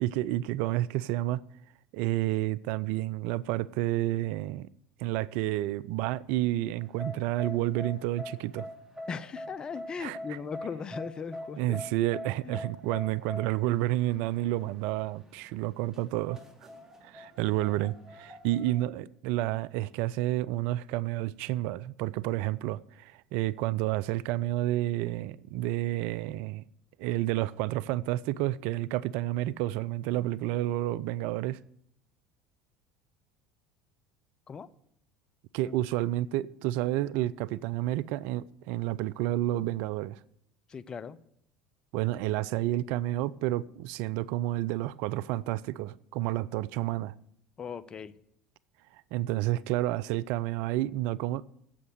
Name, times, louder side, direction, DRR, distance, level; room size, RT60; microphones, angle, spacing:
voice 1, 0.0-1.4 1.9-4.7 5.0-8.7 10.0-10.4 11.6-16.4 17.0-26.6 27.0-31.6 35.5-40.2 41.9-47.1 48.9-51.5, right 15 dB, 60° right, 0.3 m, -30 dB
sound 1, 6.8-18.7, left 1 dB, 20° right, 3.3 m, -44 dB
voice 2, 9.1-11.8 12.4-12.6 34.5-34.7 35.6-35.7 40.7-41.2 47.6-48.1, left 6 dB, 30° left, 0.6 m, -38 dB
8.6 x 7.9 x 8.0 m
hypercardioid pair, 70°, 3 cm